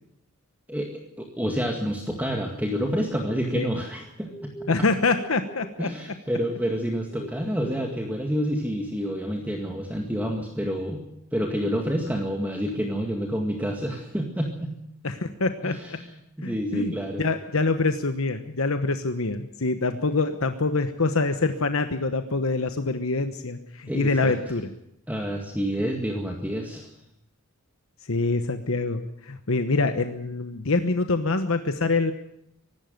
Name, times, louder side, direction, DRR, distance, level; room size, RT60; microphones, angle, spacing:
voice 1, 0.7-4.3 5.8-11.0 11.3-14.7 15.6-16.1 16.4-17.2 23.9-24.4 25.1-26.9, equal, 5° right, 1 dB, 2.0 m, -28 dB
sound 1, 4.0-5.9 6.1-8.0, right 1 dB, 15° left, 2.3 m, -43 dB
voice 2, 4.7-5.9 15.0-16.0 16.4-16.9 17.2-24.7 28.1-32.1, left 3 dB, 65° left, 8 dB, 1.1 m, -25 dB
24.0 x 12.0 x 9.2 m, 0.79 s
head